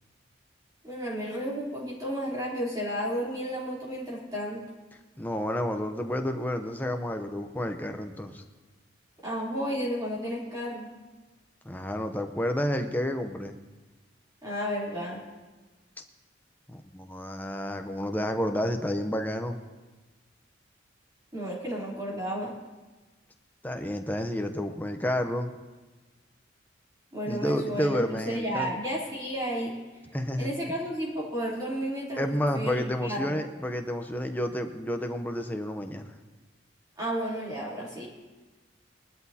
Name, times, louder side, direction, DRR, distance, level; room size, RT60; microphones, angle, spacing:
voice 1, 0.8-4.6 9.2-10.9 14.4-15.2 21.3-22.5 27.1-29.7 30.4-32.2 32.5-33.4 37.0-38.1, equal, 20° right, -6 dB, 3.2 m, -32 dB
voice 2, 5.2-8.4 11.6-13.6 16.7-19.6 23.6-25.5 27.2-28.7 30.1-30.5 32.2-36.1, equal, 10° left, 5 dB, 0.7 m, -30 dB
20.0 x 12.5 x 2.8 m, 1.2 s
head